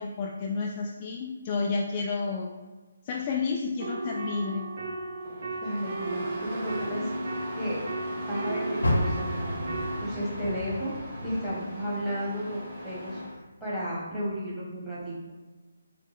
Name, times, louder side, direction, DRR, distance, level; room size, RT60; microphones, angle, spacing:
voice 1, 0.0-2.5 3.1-4.7, left 4 dB, 30° left, 0 dB, 0.3 m, -30 dB
sound 1, 3.8-10.1, right 3 dB, 50° right, 0.6 m, -35 dB
Engine starting, 5.2-13.4, equal, 30° right, 1.3 m, -38 dB
voice 2, 5.6-7.8 8.3-9.7 10.0-10.9 11.2-13.2 13.6-15.2, equal, 5° right, -11 dB, 1.3 m, -33 dB
Car, 8.8-12.1 12.5-13.8 14.3-14.4 15.0-15.1, left 1 dB, 75° left, 0.8 m, -32 dB
5.0 x 2.2 x 3.5 m, 1.2 s
figure-of-eight pair, 145°, 0 cm